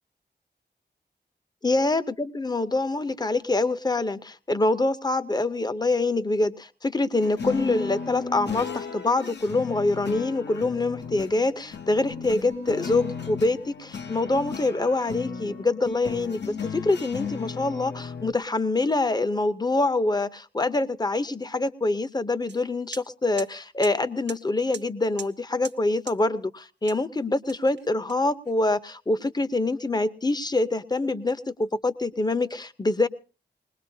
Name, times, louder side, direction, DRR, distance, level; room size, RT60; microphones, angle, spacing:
voice 1, 1.6-33.1, left 2 dB, 20° left, 14 dB, 0.7 m, -25 dB
sound 1, 7.2-18.3, left 5 dB, 70° left, 0.9 m, -35 dB
sound 2, 22.5-22.6 22.9-23.0 23.4-23.5 23.8-23.9 24.3-24.4 24.7-24.8 25.2-25.3 25.6-25.8 26.1-26.2 26.9-27.1 27.5-28.5, right 6 dB, 70° right, 0.9 m, -40 dB
20.5 x 20.5 x 2.7 m, 0.35 s
wide cardioid pair, 90°, 19 cm